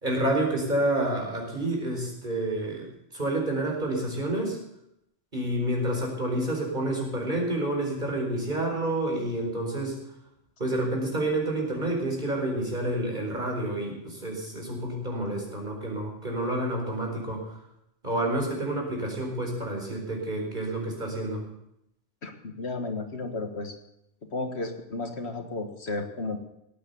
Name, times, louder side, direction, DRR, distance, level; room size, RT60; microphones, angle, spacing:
voice 1, 0.0-4.6 5.3-10.0 10.6-17.6 18.0-21.4, right 1 dB, 40° right, 0 dB, 4.8 m, -29 dB
voice 2, 22.2-23.8 24.3-26.4, left 3 dB, 65° left, 5 dB, 1.9 m, -33 dB
18.0 x 9.1 x 6.9 m, 0.80 s
omnidirectional pair, 1.2 m